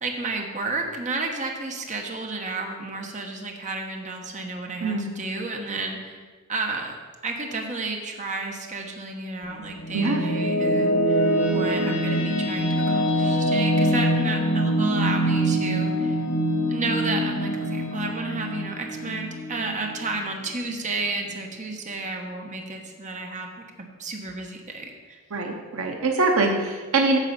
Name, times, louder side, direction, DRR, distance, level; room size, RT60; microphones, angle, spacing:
voice 1, 0.0-6.2 6.5-6.9 7.2-11.2 11.5-16.2 16.7-25.2, right 3 dB, 35° right, 2 dB, 1.1 m, -32 dB
sound 1, 9.4-20.8, equal, 80° left, 1.8 m, -24 dB
voice 2, 25.3-27.2, right 3 dB, 65° right, 3 dB, 0.8 m, -23 dB
9.2 x 4.9 x 7.2 m, 1.5 s
head